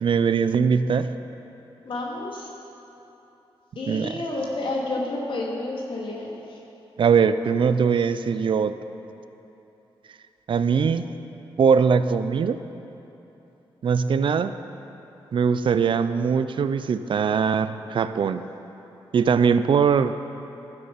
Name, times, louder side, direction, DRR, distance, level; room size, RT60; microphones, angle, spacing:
voice 1, 0.0-1.1 3.9-4.2 7.0-8.7 10.5-11.1 11.6-12.6 13.8-14.5 15.3-18.4 19.1-20.2, right 6 dB, 60° right, 12 dB, 0.4 m, -21 dB
voice 2, 1.9-2.5 3.8-6.3, left 2 dB, 65° left, -2 dB, 2.3 m, -30 dB
15.0 x 7.8 x 5.8 m, 3.0 s
cardioid pair, 85°, 10 cm